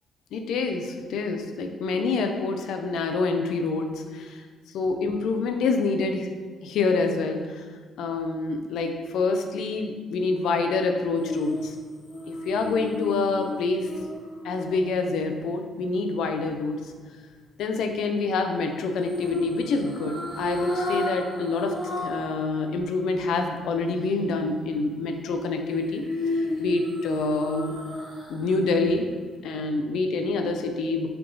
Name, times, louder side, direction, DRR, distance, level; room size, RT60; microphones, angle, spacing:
voice 1, 0.3-4.4 4.7-6.3 6.6-7.6 8.0-11.8 12.3-13.9 14.4-16.9 17.6-26.1 26.3-27.8 28.3-29.1 29.4-31.1, left 3 dB, 80° left, 5 dB, 0.4 m, -27 dB
sound 1, 11.2-15.4 19.0-22.3 22.7-22.8 25.6-28.5 28.9-29.0, left 2 dB, 45° left, 1.4 m, -32 dB
3.8 x 3.4 x 3.7 m, 1.5 s
cardioid pair, 90°, 0 cm